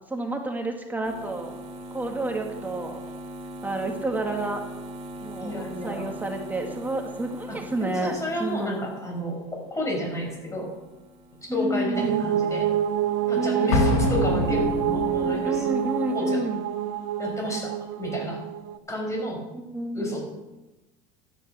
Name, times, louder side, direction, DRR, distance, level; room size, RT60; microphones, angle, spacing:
voice 1, 0.1-1.5 1.9-3.0 3.6-4.6 5.2-8.8 11.5-12.3 13.4-16.6 19.5-20.1, right 1 dB, 10° right, 2 dB, 2.1 m, -30 dB
sound 1, 1.0-12.3 12.6-16.2, right 1 dB, 40° right, 3.0 m, -42 dB
voice 2, 5.4-6.1 7.5-10.7 11.4-12.7 13.3-15.7 16.1-16.4 17.2-18.4 18.9-19.4 19.9-20.2, equal, 15° left, 0 dB, 6.3 m, -31 dB
sound 2, 11.9-18.8, right 10 dB, 75° right, 0.9 m, -27 dB
Explosion, 13.7-15.4, left 3 dB, 80° left, 2.2 m, -25 dB
13.0 x 10.5 x 6.2 m, 1.1 s
supercardioid pair, 105°, 17 cm